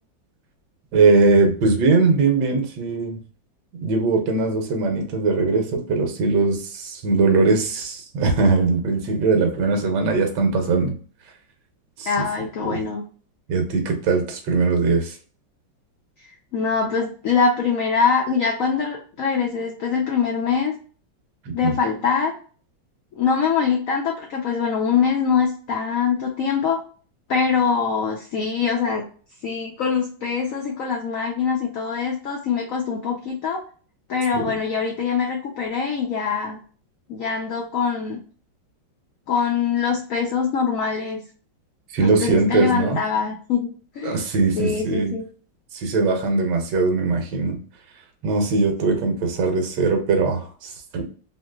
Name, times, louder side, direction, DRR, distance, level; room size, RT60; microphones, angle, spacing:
voice 1, 0.9-3.2 3.8-10.9 12.0-12.1 12.6-12.8 13.5-15.2 21.6-21.8 34.3-34.4 41.9-43.0 44.0-45.1 45.7-47.6 48.2-51.0, right 3 dB, 70° right, 3 dB, 1.3 m, -20 dB
voice 2, 12.1-13.0 16.5-20.7 21.5-22.3 23.1-26.8 27.3-29.0 29.4-33.6 34.1-36.6 37.1-38.2 39.3-41.2 42.0-44.2 44.6-45.3, left 6 dB, 85° left, 1 dB, 0.7 m, -23 dB
3.2 x 2.8 x 2.2 m, 0.41 s
omnidirectional pair, 2.1 m